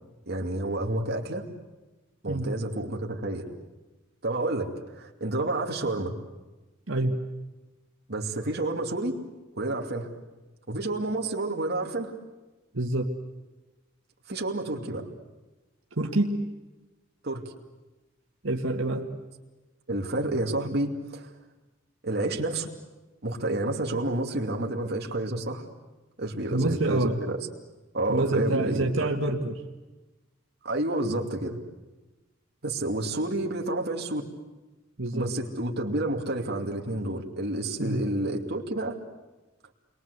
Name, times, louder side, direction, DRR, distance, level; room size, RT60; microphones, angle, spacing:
voice 1, 0.3-1.5 2.2-3.4 4.2-6.1 8.1-9.2 9.6-10.1 10.7-12.1 14.3-15.1 17.2-17.5 19.9-21.3 22.0-22.7 23.2-25.7 26.2-27.5 27.9-29.1 30.6-31.6 32.6-34.3 35.1-39.0, right 2 dB, 55° right, 1 dB, 2.6 m, -29 dB
voice 2, 6.9-7.2 12.7-13.1 16.0-16.4 18.4-19.1 24.5-24.7 26.5-27.2 28.1-29.5 35.0-35.3 37.8-38.0, right 2 dB, 90° right, 2 dB, 1.8 m, -27 dB
30.0 x 22.5 x 8.2 m, 1.1 s
head